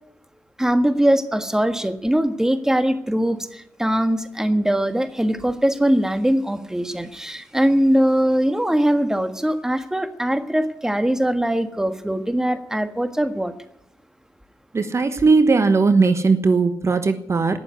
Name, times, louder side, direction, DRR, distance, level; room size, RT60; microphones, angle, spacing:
voice 1, 0.6-13.5, right 1 dB, 5° right, 9 dB, 1.5 m, -21 dB
voice 2, 14.7-17.6, right 4 dB, 40° right, 10 dB, 1.2 m, -18 dB
17.5 x 7.1 x 9.5 m, 0.77 s
supercardioid pair, 45°, 7 cm